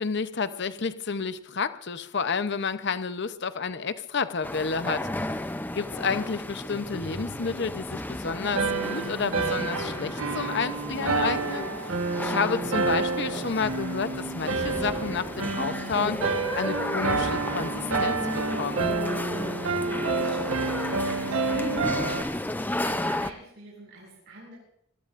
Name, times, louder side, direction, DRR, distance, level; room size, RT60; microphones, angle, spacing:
voice 1, 0.0-5.1 5.7-11.7 12.2-16.2 16.5-18.9, left 5 dB, 55° left, 11 dB, 0.8 m, -30 dB
People in old church, 4.4-23.3, left 1 dB, 10° left, 0.5 m, -33 dB
sound 1, 7.0-14.2 14.5-14.9, left 1 dB, 25° left, 3.6 m, -56 dB
sound 2, 8.6-22.2, right 4 dB, 75° right, 1.3 m, -29 dB
voice 2, 19.7-24.5, right 2 dB, 55° right, -5 dB, 6.8 m, -45 dB
25.5 x 20.5 x 2.6 m, 0.70 s
head